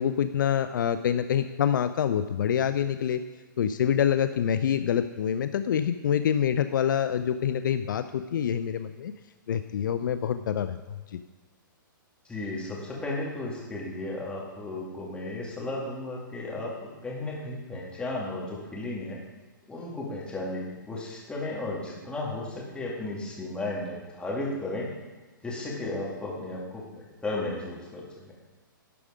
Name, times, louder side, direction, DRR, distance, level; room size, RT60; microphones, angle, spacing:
voice 1, 0.0-3.2 3.6-9.1 9.5-10.8 11.1-11.2, left 9 dB, 65° left, 10 dB, 0.4 m, -26 dB
voice 2, 12.3-19.2 19.7-24.9 25.4-26.8 27.2-28.3, left 2 dB, 10° left, -4 dB, 2.4 m, -34 dB
11.5 x 4.9 x 5.0 m, 1.3 s
hypercardioid pair, 125°, 11 cm